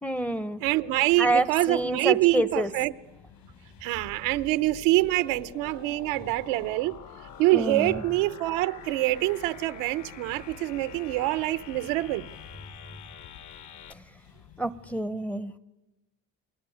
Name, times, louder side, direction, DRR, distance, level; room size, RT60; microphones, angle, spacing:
voice 1, 0.0-0.6 1.2-2.7 7.5-8.0 13.9-14.0 14.6-15.6, right 1 dB, 5° left, 0.9 m, -28 dB
sound 1, 0.6-15.0, left 8 dB, 65° left, 6.7 m, -53 dB
voice 2, 0.6-2.9 3.8-7.0 7.4-12.3, right 18 dB, 85° right, 1.0 m, -25 dB
sound 2, 3.9-13.9, left 8 dB, 50° left, 1.7 m, -46 dB
29.0 x 22.0 x 9.4 m
cardioid pair, 115°, 38 cm